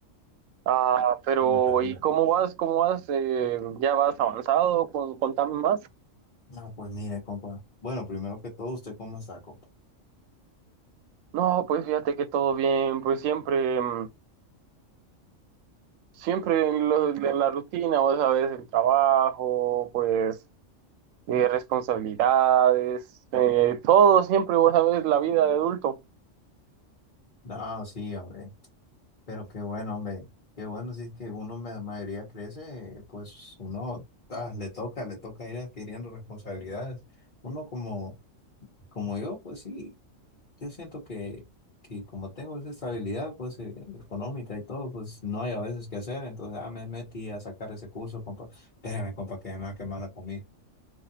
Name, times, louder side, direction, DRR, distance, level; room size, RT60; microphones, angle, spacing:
voice 1, 0.7-5.8 11.3-14.1 16.2-20.4 21.3-23.0 23.3-26.0, right 9 dB, 80° right, 1.0 m, -23 dB
voice 2, 1.4-2.0 6.5-9.6 27.4-28.5 29.3-30.3 30.6-34.0 34.3-37.0 37.4-38.1 38.9-39.9 40.6-41.4 41.9-50.4, left 2 dB, 40° left, 1.3 m, -36 dB
4.0 x 2.8 x 2.7 m
omnidirectional pair, 1.3 m